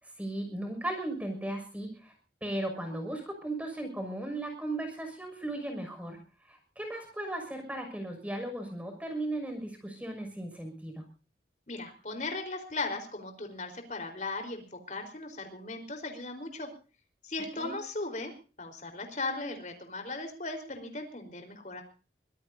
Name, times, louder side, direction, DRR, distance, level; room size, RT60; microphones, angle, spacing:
voice 1, 0.0-2.1 2.4-6.2 6.4-11.0 17.6-17.7, right 1 dB, 10° right, 4 dB, 6.3 m, -36 dB
voice 2, 11.7-16.7 17.2-18.3 18.6-21.8, left 3 dB, 45° left, 4 dB, 4.4 m, -37 dB
25.0 x 17.5 x 2.8 m, 0.36 s
head